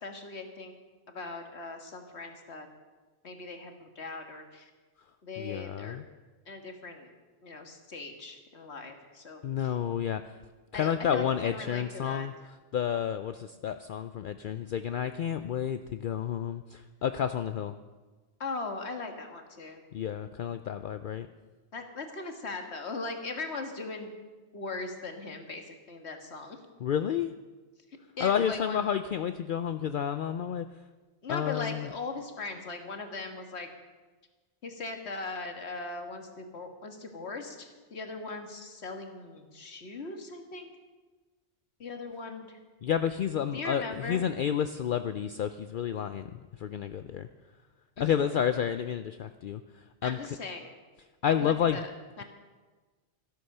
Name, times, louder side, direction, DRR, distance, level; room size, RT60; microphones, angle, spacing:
voice 1, 0.0-0.8 1.1-2.7 3.2-4.7 5.2-6.0 6.5-7.1 7.4-9.7 10.7-12.3 18.4-19.8 21.7-24.1 24.5-26.6 28.2-28.8 31.2-33.7 34.6-40.7 41.8-42.6 43.5-44.2 48.0-48.1 50.0-50.7 51.4-51.9 52.2-52.3, left 3 dB, 80° left, 5 dB, 1.9 m, -39 dB
voice 2, 5.4-6.0 9.4-10.4 10.7-12.3 12.7-17.8 19.9-21.3 26.8-27.3 28.2-30.7 31.3-31.9 42.8-47.3 48.0-50.2 51.2-51.8, left 8 dB, 60° left, 10 dB, 0.6 m, -30 dB
13.5 x 12.5 x 6.7 m, 1.3 s
omnidirectional pair, 1.1 m